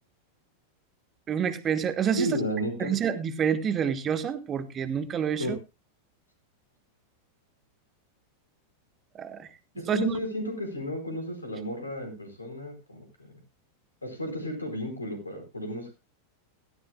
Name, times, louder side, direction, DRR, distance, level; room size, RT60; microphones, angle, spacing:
voice 1, 1.3-2.3 2.8-5.4 9.2-9.5 9.9-10.1, right 8 dB, 25° right, 13 dB, 1.2 m, -27 dB
voice 2, 2.2-2.9 5.4-5.5 9.8-13.4 14.0-15.9, equal, 80° left, 6 dB, 4.5 m, -33 dB
17.0 x 14.0 x 2.2 m, 0.26 s
figure-of-eight pair, 90°, 0 cm